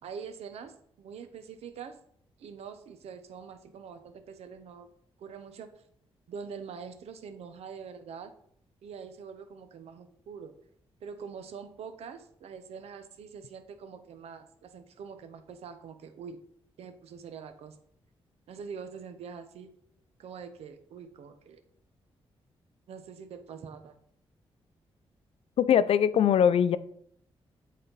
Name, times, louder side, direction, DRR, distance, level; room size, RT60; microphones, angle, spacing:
voice 1, 0.0-2.0 2.4-4.9 5.2-5.8 6.3-8.3 8.8-10.5 11.0-16.4 16.8-17.8 18.5-19.7 20.2-21.6 22.9-24.0, right 6 dB, 90° right, 9 dB, 0.9 m, -44 dB
voice 2, 25.6-26.8, left 9 dB, 75° left, 15 dB, 0.5 m, -22 dB
12.0 x 4.3 x 4.0 m, 0.67 s
cardioid pair, 95°, 10 cm